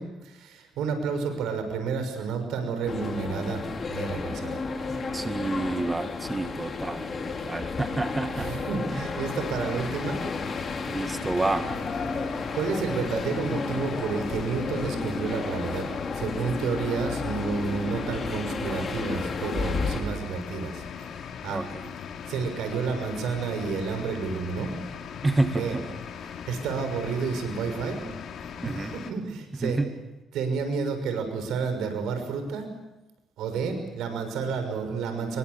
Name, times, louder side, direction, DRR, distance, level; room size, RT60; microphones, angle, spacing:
voice 1, 0.0-3.6 3.9-4.6 8.3-10.2 12.5-15.9 16.1-20.8 21.4-21.6 22.3-24.7 25.4-25.7 26.2-28.0 28.6-29.8 30.3-32.7 33.4-35.4, right 5 dB, 85° right, 7 dB, 6.3 m, -30 dB
sound 1, 2.9-20.0, left 4 dB, 45° left, 4.0 m, -32 dB
voice 2, 4.9-8.7 8.9-9.1 10.9-11.7 19.9-20.1 21.5-21.9 25.2-25.9 28.6-28.9 29.6-29.9, right 2 dB, 20° right, 8 dB, 1.7 m, -29 dB
sound 2, 9.2-29.1, left 7 dB, 70° left, 3.1 m, -39 dB
27.5 x 23.0 x 8.4 m, 1.0 s
cardioid pair, 90°, 0 cm